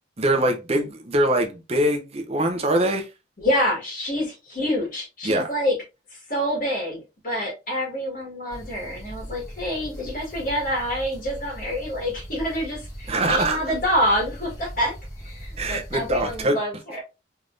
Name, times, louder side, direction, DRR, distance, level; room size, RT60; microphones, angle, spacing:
voice 1, 0.2-3.1 5.2-5.5 13.1-13.7 15.6-16.6, right 1 dB, 35° right, 0.7 m, -23 dB
voice 2, 3.4-5.7 6.1-17.0, equal, 50° left, 1.7 m, -27 dB
sound 1, 8.5-16.4, equal, 20° left, 1.3 m, -39 dB
3.4 x 3.3 x 2.5 m
head